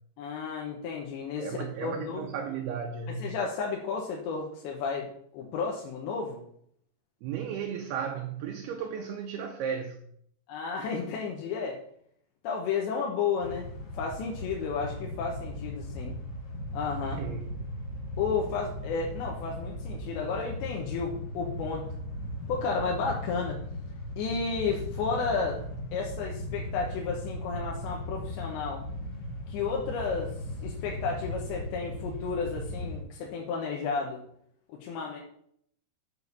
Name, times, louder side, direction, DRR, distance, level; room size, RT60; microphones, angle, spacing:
voice 1, 0.2-2.3 3.2-6.4 10.5-11.8 12.4-13.7 13.9-16.1 16.7-17.2 18.2-22.0 22.5-23.6 24.2-25.6 25.9-28.9 29.5-30.3 30.6-34.2 34.8-35.2, left 5 dB, 75° left, 3.3 m, -32 dB
voice 2, 1.4-3.2 7.2-10.0 17.0-17.7, right 7 dB, 75° right, 2.5 m, -35 dB
sound 1, 13.4-33.0, left 1 dB, 60° left, 3.1 m, -37 dB
7.2 x 6.3 x 6.9 m
omnidirectional pair, 5.2 m